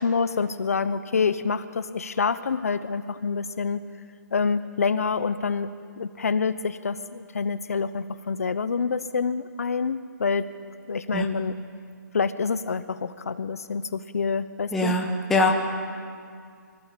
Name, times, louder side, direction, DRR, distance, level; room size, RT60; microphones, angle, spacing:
voice 1, 0.0-3.8 4.3-5.7 6.0-10.5 10.9-11.6 12.1-15.0, left 5 dB, 50° left, 13 dB, 0.9 m, -27 dB
voice 2, 14.7-15.5, left 2 dB, 5° left, 0 dB, 0.9 m, -22 dB
25.0 x 15.5 x 8.5 m, 2.2 s
hypercardioid pair, 170°, 10 cm